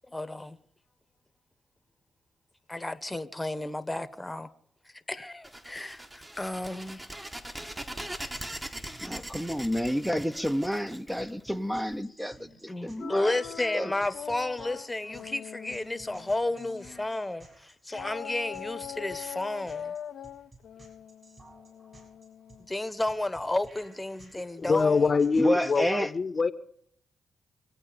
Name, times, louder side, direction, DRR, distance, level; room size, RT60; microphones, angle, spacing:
voice 1, 0.1-0.6 2.7-4.5 5.1-7.0 12.7-19.9 22.7-25.1, left 2 dB, 15° left, 1.1 m, -32 dB
sound 1, 5.4-11.9, right 1 dB, 20° right, 1.5 m, -41 dB
sound 2, 7.8-25.9, right 2 dB, 35° right, 7.0 m, -55 dB
voice 2, 9.0-13.4 13.7-13.9 25.4-26.1, equal, 5° right, 0.7 m, -30 dB
sound 3, 13.0-17.2 17.9-22.7, left 9 dB, 75° left, 0.5 m, -42 dB
voice 3, 24.6-26.5, left 4 dB, 45° left, 0.9 m, -24 dB
25.0 x 8.6 x 5.1 m
cardioid pair, 60°, 0 cm